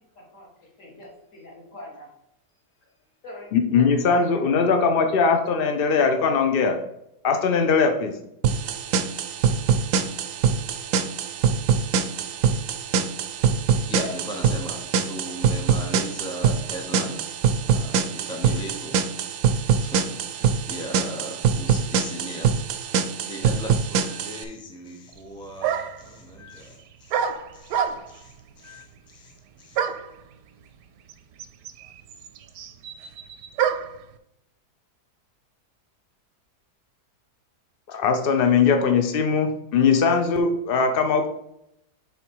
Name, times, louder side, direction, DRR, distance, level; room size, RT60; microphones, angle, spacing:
voice 1, 0.2-2.1 3.2-4.9, left 1 dB, 50° left, -2 dB, 2.1 m, -43 dB
voice 2, 3.5-6.8 7.2-8.2 37.9-41.3, left 5 dB, 70° left, 5 dB, 0.5 m, -20 dB
sound 1, 8.4-24.4, right 7 dB, 70° right, 0.8 m, -24 dB
voice 3, 13.9-17.2 17.6-19.0 19.7-22.5 22.9-23.0 23.2-27.8 28.1-29.3 29.6-29.8, equal, 5° left, 1 dB, 0.5 m, -38 dB
sound 2, 25.1-25.2 25.6-26.1 27.1-28.3 29.8-30.2 31.1-31.2 31.4-34.0, right 8 dB, 90° right, 1.2 m, -27 dB
7.0 x 3.7 x 4.6 m, 0.79 s
omnidirectional pair, 1.8 m